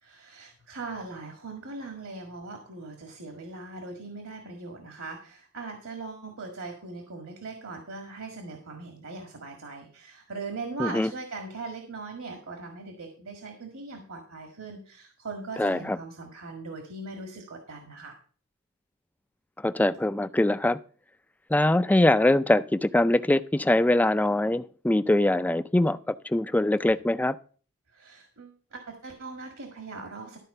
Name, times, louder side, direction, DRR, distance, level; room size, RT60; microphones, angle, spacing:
voice 1, 0.0-18.2 27.9-30.4, right 3 dB, 65° right, 3 dB, 1.8 m, -40 dB
voice 2, 10.8-11.1 15.6-16.0 19.6-20.8 21.5-26.0 26.3-27.3, left 1 dB, 5° left, 14 dB, 0.3 m, -23 dB
13.0 x 4.5 x 6.6 m, 0.42 s
head